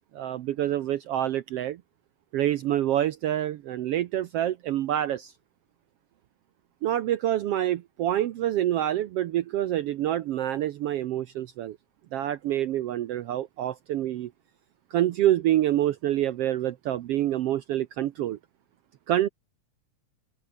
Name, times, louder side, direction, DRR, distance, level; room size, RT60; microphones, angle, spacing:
voice 1, 0.1-1.8 2.3-5.3 6.8-11.8 12.1-14.3 14.9-18.4 19.1-19.3, right 12 dB, 85° right, 1.3 m, -27 dB
open air
omnidirectional pair, 3.7 m